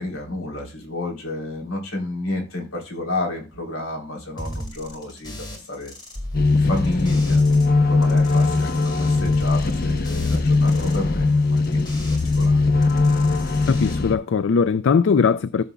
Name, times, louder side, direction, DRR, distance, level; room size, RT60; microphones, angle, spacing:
voice 1, 0.0-5.9 6.5-7.4 7.9-12.6, left 2 dB, 80° left, 3.7 m, -31 dB
sound 1, 4.4-7.7 7.9-12.5 12.7-14.0, equal, 20° left, 2.1 m, -37 dB
sound 2, 6.3-14.1, left 3 dB, 45° left, 0.8 m, -20 dB
voice 2, 13.7-15.6, left 5 dB, 60° left, 0.4 m, -19 dB
13.5 x 6.8 x 2.3 m
head